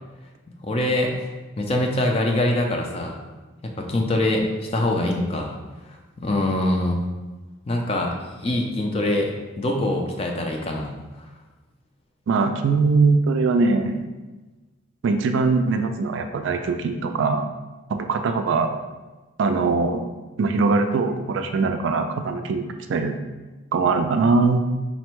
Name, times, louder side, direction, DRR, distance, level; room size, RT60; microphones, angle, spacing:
voice 1, 0.6-1.3 1.6-3.1 3.8-4.5 4.7-5.5 6.2-7.0 7.7-8.1 8.4-10.9, left 1 dB, 30° left, 1 dB, 0.4 m, -23 dB
voice 2, 12.3-14.1 15.0-17.5 17.9-18.7 19.4-20.1 20.4-23.2 23.7-24.6, right 4 dB, 60° right, 6 dB, 0.3 m, -21 dB
4.1 x 2.1 x 4.4 m, 1.2 s
head